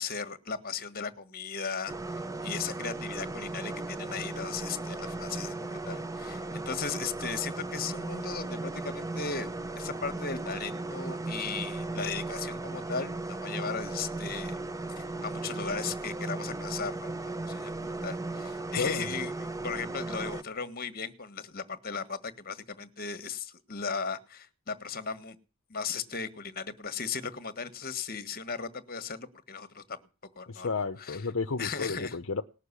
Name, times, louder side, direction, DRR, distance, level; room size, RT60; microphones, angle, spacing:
voice 1, 0.0-9.5 9.8-14.6 15.0-25.4 25.7-30.0 30.3-30.7 31.0-31.2 31.6-32.2, left 5 dB, 40° left, 1.5 m, -37 dB
sound 1, 1.9-20.4, right 2 dB, 15° right, 0.8 m, -36 dB
voice 2, 18.8-19.1 30.5-32.4, left 4 dB, 60° left, 0.8 m, -32 dB
19.0 x 6.7 x 9.8 m
head